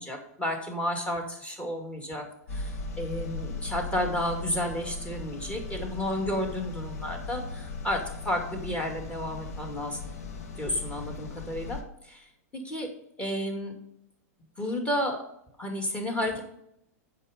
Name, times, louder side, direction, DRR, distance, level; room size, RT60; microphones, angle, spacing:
voice 1, 0.0-2.2 2.5-10.1 10.6-11.8 12.0-12.3 12.5-12.9 13.2-13.8 14.6-15.2 15.6-16.4, left 1 dB, 15° left, 2 dB, 2.3 m, -32 dB
sound 1, 2.5-11.8, left 4 dB, 70° left, 1.5 m, -38 dB
8.1 x 6.4 x 5.1 m, 0.76 s
hypercardioid pair, 115°, 8 cm